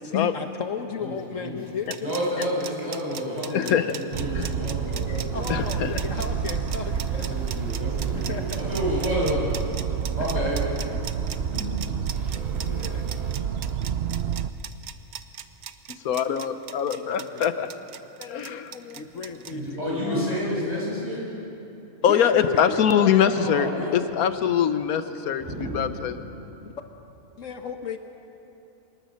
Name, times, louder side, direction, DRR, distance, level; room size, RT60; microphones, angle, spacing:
voice 1, 0.0-2.1 2.5-2.6 5.3-7.4 8.1-8.6 10.3-10.5 12.6-13.0 16.9-17.7 18.9-21.0 22.0-23.1 26.6-26.7 27.4-28.0, left 6 dB, 65° left, 6 dB, 1.4 m, -35 dB
voice 2, 1.0-1.6 2.0-5.7 7.1-9.7 10.1-10.7 11.5-11.7 19.5-21.3 23.3-24.0 25.4-25.8 26.2-26.5, equal, 25° right, -5 dB, 7.2 m, -30 dB
sound 1, 1.7-19.5, right 9 dB, 90° right, 1.3 m, -38 dB
voice 3, 3.5-4.0 4.3-4.5 5.5-6.0 16.0-17.7 18.2-19.0 22.0-25.5 25.7-26.2, left 8 dB, 90° left, 10 dB, 1.3 m, -23 dB
sound 2, 4.1-14.5, right 8 dB, 55° right, 0.8 m, -29 dB
sound 3, 5.3-9.1 9.8-9.9 10.8-13.3, left 1 dB, ahead, 4.0 m, -43 dB
25.0 x 20.5 x 6.5 m, 2.9 s
omnidirectional pair, 1.5 m